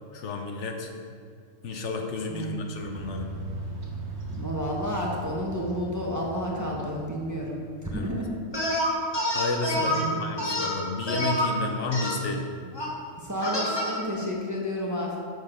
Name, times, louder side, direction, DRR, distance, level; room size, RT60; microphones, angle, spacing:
voice 1, 0.1-0.9 1.6-3.3 7.9-8.1 9.3-12.5, left 3 dB, 70° left, 3 dB, 1.1 m, -31 dB
voice 2, 2.3-2.8 4.3-8.3 9.7-10.3 13.2-15.2, equal, 15° right, -3 dB, 0.9 m, -31 dB
sound 1, 2.8-8.1, right 1 dB, 60° right, 1.3 m, -38 dB
sound 2, 8.5-10.0 10.4-11.5 11.9-12.2 12.7-12.9 13.4-14.0, left 1 dB, 20° left, 1.4 m, -27 dB
6.6 x 6.5 x 5.0 m, 2.2 s
omnidirectional pair, 1.3 m